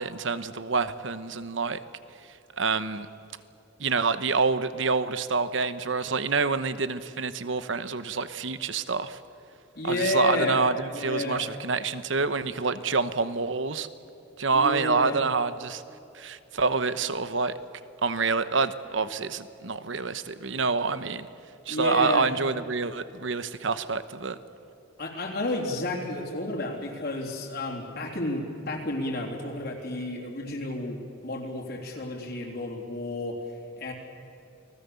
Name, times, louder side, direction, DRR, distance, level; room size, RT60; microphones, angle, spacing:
voice 1, 0.0-1.8 2.6-3.1 3.8-9.2 9.8-13.9 14.4-15.8 16.1-17.5 18.0-21.3 21.7-24.4, right 4 dB, 70° right, 13 dB, 1.0 m, -27 dB
voice 2, 9.8-11.5 14.5-15.3 21.7-22.3 25.0-33.9, left 2 dB, 55° left, -1 dB, 3.5 m, -31 dB
29.5 x 20.0 x 7.0 m, 2.7 s
head